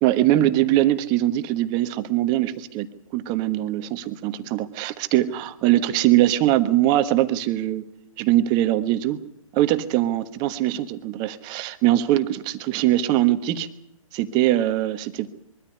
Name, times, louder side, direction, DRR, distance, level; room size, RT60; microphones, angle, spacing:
voice 1, 0.0-2.9 3.1-7.8 8.2-9.2 9.5-13.7 14.1-15.3, right 14 dB, 25° right, 11 dB, 1.3 m, -22 dB
23.0 x 13.5 x 9.9 m, 0.76 s
figure-of-eight pair, 130°, 18 cm